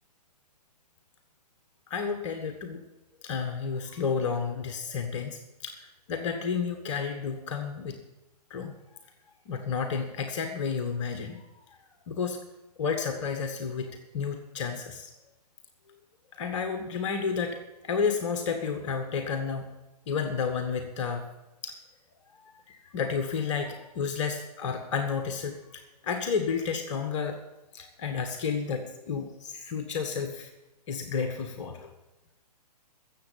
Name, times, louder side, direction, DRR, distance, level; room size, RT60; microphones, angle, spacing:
voice 1, 1.9-2.8 3.2-8.0 8.5-8.8 9.4-11.8 12.1-12.4 12.8-15.1 16.3-19.7 20.1-21.3 21.6-21.7 22.4-27.4 27.7-30.5 30.9-31.9, left 6 dB, 45° left, 5 dB, 1.6 m, -31 dB
14.0 x 7.8 x 8.6 m, 1.0 s
figure-of-eight pair, 130°, 21 cm